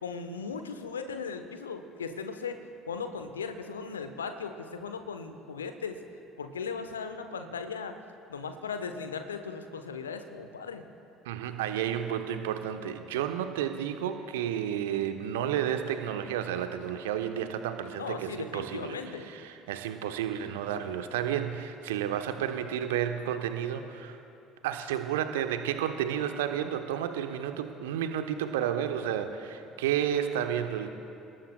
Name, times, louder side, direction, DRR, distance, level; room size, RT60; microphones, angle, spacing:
voice 1, 0.0-2.6 2.9-6.0 6.4-7.9 8.3-10.8 18.0-19.3, left 5 dB, 80° left, 8 dB, 0.9 m, -37 dB
voice 2, 11.2-24.2 24.6-30.9, right 9 dB, 70° right, 7 dB, 1.0 m, -31 dB
29.0 x 18.5 x 2.3 m, 2.7 s
figure-of-eight pair, 60°, 0 cm